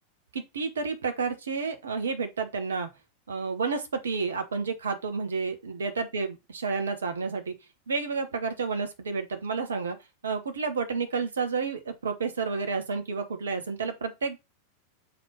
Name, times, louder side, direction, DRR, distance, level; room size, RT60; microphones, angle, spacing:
voice 1, 0.3-2.9 3.3-7.5 7.9-10.0 10.2-14.4, right 4 dB, 70° right, 1.1 m, -30 dB
6.6 x 3.9 x 4.0 m
figure-of-eight pair, 90°, 0 cm